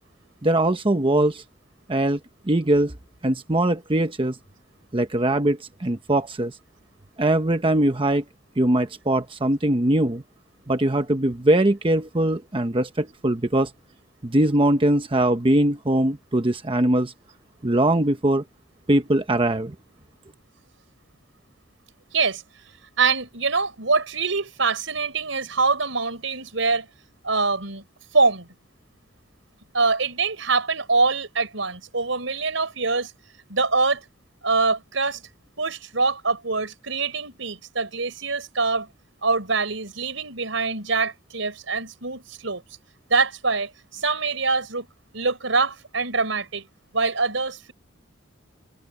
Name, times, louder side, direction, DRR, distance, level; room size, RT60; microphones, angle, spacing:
voice 1, 0.4-1.4 1.9-2.2 2.5-3.0 3.2-4.4 4.9-6.5 7.2-8.2 8.6-10.2 10.7-13.7 14.2-17.1 17.6-18.4 18.9-19.7, right 1 dB, 25° right, 1.0 m, -21 dB
voice 2, 23.0-26.9 27.2-27.8 28.1-28.5 29.7-33.1 33.5-34.0 34.4-35.2 35.6-38.9 39.2-42.6 43.1-44.9 45.1-46.7 46.9-47.7, right 4 dB, 85° right, 4.7 m, -24 dB
head